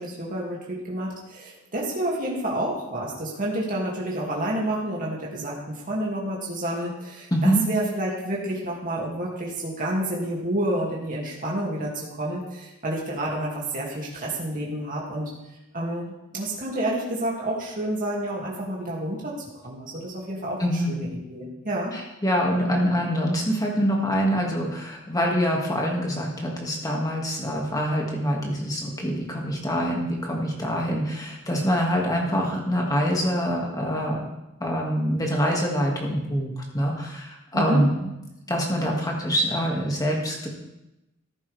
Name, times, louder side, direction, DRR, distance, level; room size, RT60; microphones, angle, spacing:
voice 1, 0.0-15.3 15.7-19.3 19.6-21.9 37.5-37.8, right 1 dB, 40° right, -4 dB, 2.4 m, -29 dB
voice 2, 7.3-7.6 20.6-21.0 21.9-34.2 34.6-38.1 38.5-40.5, equal, 15° left, -1 dB, 2.1 m, -25 dB
14.0 x 10.5 x 3.5 m, 0.93 s
head